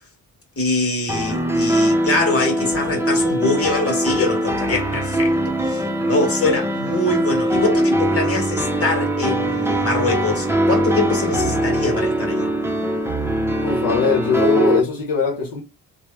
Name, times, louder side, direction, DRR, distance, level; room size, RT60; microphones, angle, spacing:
voice 1, 0.6-5.3 5.7-12.5, left 2 dB, 40° left, 1.4 m, -23 dB
sound 1, 1.1-14.8, right 1 dB, 5° right, 0.6 m, -21 dB
voice 2, 13.6-15.6, left 5 dB, 70° left, 0.9 m, -20 dB
3.0 x 2.1 x 2.2 m
cardioid pair, 70°, 36 cm